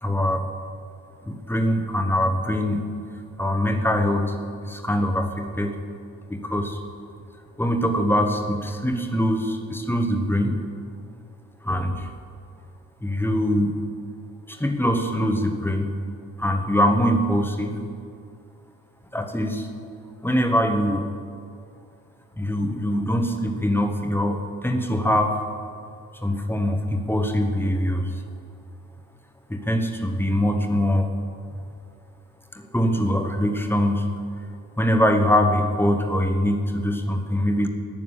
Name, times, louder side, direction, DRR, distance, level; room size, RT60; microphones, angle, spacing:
voice 1, 0.0-0.4 1.3-2.9 3.4-4.3 4.6-5.8 6.3-6.8 7.6-10.6 11.6-12.1 13.0-13.8 14.5-15.9 16.4-17.8 19.1-19.7 20.2-21.1 22.4-25.4 26.2-28.1 29.5-31.1 32.5-34.1 34.8-37.7, equal, 5° left, 4 dB, 1.7 m, -23 dB
19.0 x 7.1 x 8.3 m, 2.3 s
figure-of-eight pair, 40°, 45 cm